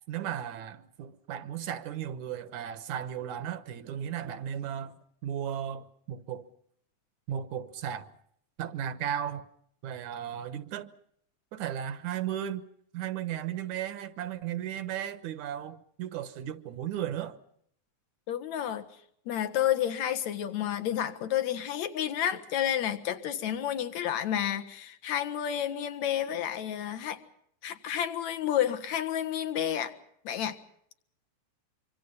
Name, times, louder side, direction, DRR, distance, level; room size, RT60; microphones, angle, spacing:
voice 1, 0.1-4.9 5.2-6.5 7.3-8.1 8.6-9.4 9.8-10.9 11.5-12.7 12.9-17.4, right 10 dB, 75° right, 2.5 m, -35 dB
voice 2, 18.3-18.9 19.3-27.2 27.6-29.9 30.2-30.6, left 10 dB, 70° left, 2.7 m, -30 dB
25.5 x 25.0 x 5.5 m
omnidirectional pair, 3.4 m